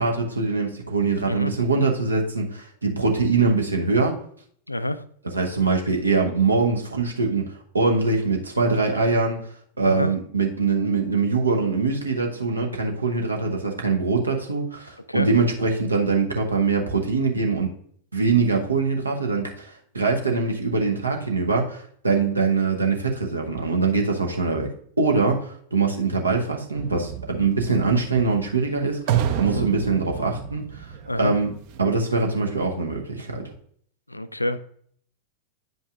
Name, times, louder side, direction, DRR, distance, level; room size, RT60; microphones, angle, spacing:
voice 1, 0.0-4.2 5.3-9.5 9.8-17.7 18.1-24.7 25.0-31.5 31.8-33.4, right 4 dB, 80° right, 2 dB, 0.9 m, -23 dB
voice 2, 4.7-5.0 9.9-10.1 15.1-15.3 29.4-29.7 31.1-31.3 34.1-34.6, left 1 dB, 85° left, 14 dB, 0.3 m, -27 dB
sound 1, 26.8-31.8, right 9 dB, 45° right, 0.6 m, -29 dB
9.1 x 5.3 x 2.4 m, 0.62 s
figure-of-eight pair, 90°, 0 cm